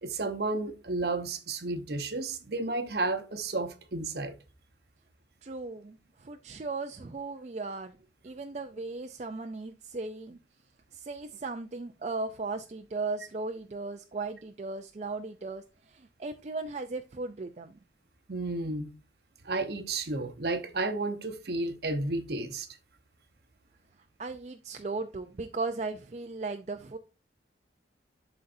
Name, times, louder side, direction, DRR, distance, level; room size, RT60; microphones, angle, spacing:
voice 1, 0.0-4.3 18.3-18.9 19.4-22.7, right 2 dB, 60° right, 0.9 m, -32 dB
voice 2, 5.4-8.0 8.2-10.4 10.9-17.8 24.2-27.0, right 3 dB, 40° right, 0.4 m, -37 dB
11.5 x 4.0 x 2.6 m
head